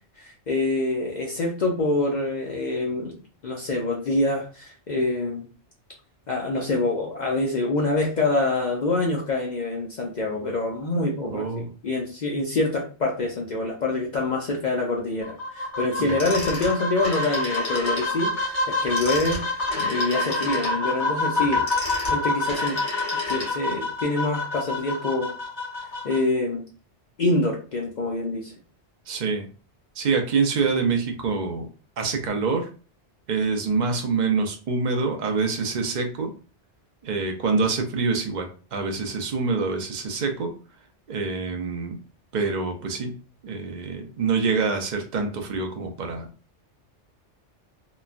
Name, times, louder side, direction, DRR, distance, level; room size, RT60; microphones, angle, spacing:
voice 1, 0.2-3.2 3.4-5.5 6.3-18.6 18.8-21.7 22.1-22.8 23.3-25.3 26.0-26.6 27.2-28.5, left 2 dB, 55° left, -1 dB, 0.5 m, -26 dB
voice 2, 11.3-11.7 16.0-16.1 29.1-29.5 30.0-31.7 32.0-32.7 33.3-36.3 37.0-40.5 41.1-42.0 42.3-43.2 43.4-46.3, right 4 dB, 50° right, 5 dB, 0.6 m, -26 dB
sound 1, 15.2-26.2, left 2 dB, 75° left, 1.3 m, -27 dB
Telephone, 16.1-18.1 18.8-23.8, left 2 dB, 40° left, 1.0 m, -33 dB
3.0 x 2.2 x 2.4 m, 0.36 s
omnidirectional pair, 1.2 m